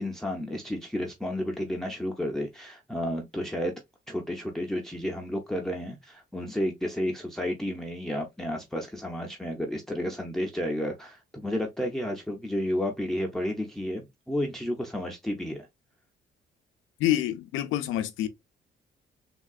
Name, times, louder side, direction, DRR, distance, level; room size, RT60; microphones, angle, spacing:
voice 1, 0.0-3.7 4.1-15.7, left 1 dB, ahead, 0.5 m, -31 dB
voice 2, 17.0-18.3, left 13 dB, 90° left, 0.5 m, -27 dB
3.6 x 2.3 x 2.3 m
cardioid pair, 90°, 20 cm